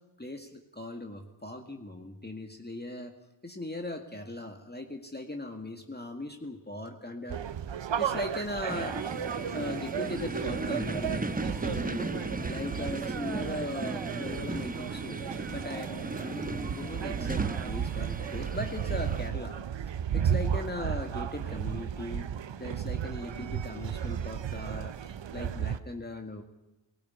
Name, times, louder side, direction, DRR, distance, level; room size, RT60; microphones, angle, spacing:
voice 1, 0.2-3.1 3.4-7.4 8.0-9.0 9.5-11.3 11.7-12.1 12.5-22.3 22.6-24.9 25.3-26.4, left 1 dB, 20° left, 3 dB, 1.9 m, -39 dB
sound 1, 7.3-25.8, right 8 dB, 65° right, 0.8 m, -34 dB
sound 2, 8.7-19.3, right 2 dB, 15° right, 1.0 m, -36 dB
19.0 x 16.5 x 9.6 m, 0.95 s
cardioid pair, 45°, 49 cm